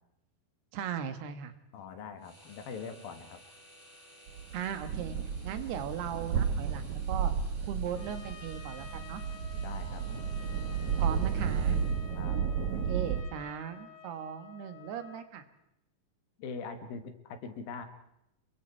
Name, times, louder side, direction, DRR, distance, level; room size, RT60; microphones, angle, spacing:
voice 1, 0.7-1.5 4.5-5.2 5.4-7.3 7.6-9.2 11.0-11.8 12.9-15.4, right 8 dB, 90° right, 10 dB, 3.5 m, -38 dB
voice 2, 1.7-3.4 9.6-10.1 12.2-12.4 16.4-17.9, left 5 dB, 70° left, 8 dB, 3.3 m, -42 dB
sound 1, 2.2-12.3, equal, 10° right, 6.3 m, -57 dB
sound 2, 4.3-13.2, right 7 dB, 60° right, 2.4 m, -32 dB
Trumpet, 7.9-15.3, left 6 dB, 35° left, 2.3 m, -51 dB
29.0 x 22.5 x 4.6 m, 0.84 s
omnidirectional pair, 4.5 m